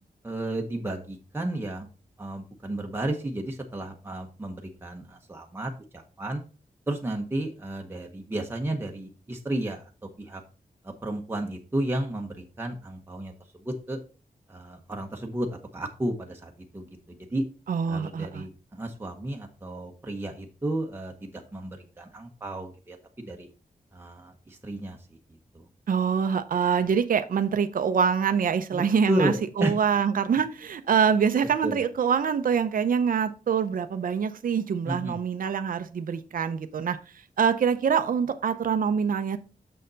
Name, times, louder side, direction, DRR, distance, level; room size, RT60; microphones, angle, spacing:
voice 1, 0.2-1.9 2.2-6.4 6.9-9.9 10.2-10.4 10.8-13.3 13.6-14.0 14.5-15.5 15.7-17.4 17.9-23.5 23.9-25.2 25.5-25.7 28.7-29.7 31.6-31.8 34.8-35.2, right 1 dB, 15° right, 0.9 m, -33 dB
voice 2, 17.7-18.4 25.9-37.0 37.4-39.4, right 7 dB, 65° right, 0.6 m, -25 dB
6.6 x 6.5 x 3.9 m
wide cardioid pair, 180°, 15 cm